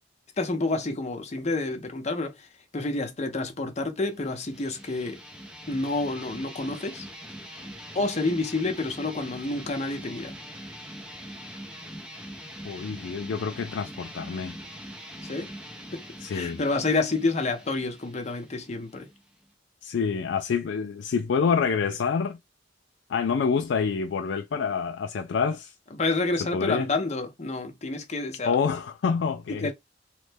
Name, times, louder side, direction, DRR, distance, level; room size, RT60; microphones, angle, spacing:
voice 1, 0.4-2.5 2.7-5.2 5.7-7.1 7.9-10.3 15.2-15.5 15.9-16.0 16.3-19.1 25.9-28.6 29.5-29.7, left 3 dB, 35° left, 0.7 m, -29 dB
sound 1, 4.1-19.5, equal, 5° right, 0.6 m, -43 dB
voice 2, 12.6-14.6 16.2-16.6 19.8-22.4 23.1-25.7 26.5-26.8 28.4-29.7, left 6 dB, 75° left, 0.3 m, -27 dB
3.1 x 2.1 x 3.2 m
head